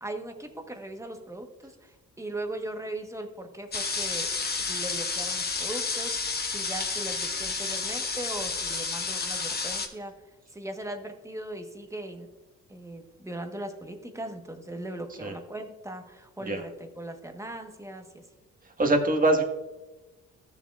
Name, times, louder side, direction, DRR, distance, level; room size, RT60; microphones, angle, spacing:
voice 1, 0.0-4.3 4.6-10.1 10.5-12.3 12.7-18.2, right 1 dB, 10° right, 5 dB, 1.3 m, -39 dB
sound 1, 3.7-9.9, left 4 dB, 35° left, 1.4 m, -31 dB
voice 2, 18.8-19.4, right 2 dB, 30° right, 2 dB, 1.7 m, -23 dB
15.0 x 7.3 x 2.5 m, 1.1 s
cardioid pair, 90°, 30 cm